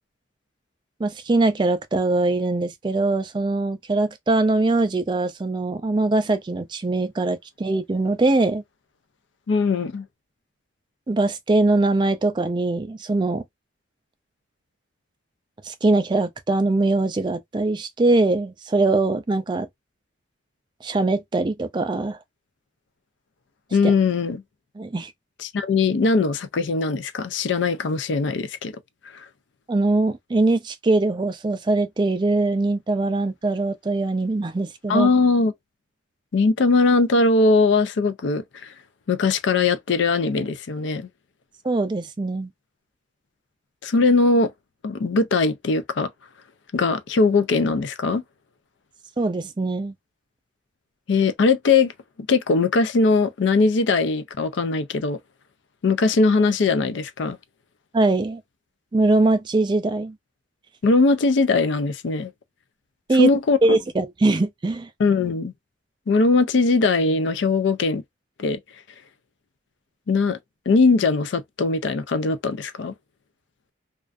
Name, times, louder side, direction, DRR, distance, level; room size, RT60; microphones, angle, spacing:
voice 1, 1.0-8.6 11.1-13.4 15.6-19.7 20.8-22.2 23.8-23.9 24.8-25.1 29.7-35.1 41.6-42.5 49.2-49.9 57.9-58.4 58.9-60.1 63.1-63.3 63.6-64.9, right 2 dB, 25° right, 0.3 m, -22 dB
voice 2, 9.5-10.0 23.7-24.4 25.4-28.8 29.1-29.2 34.9-35.5 36.3-38.7 39.1-41.1 43.8-44.5 44.8-46.1 46.7-48.2 51.1-51.9 52.3-55.2 55.8-57.4 60.8-62.3 63.1-63.6 65.0-65.5 66.1-68.0 68.4-68.6 70.1-70.4 70.7-72.9, left 3 dB, 65° left, 0.4 m, -20 dB
2.4 x 2.2 x 2.4 m
head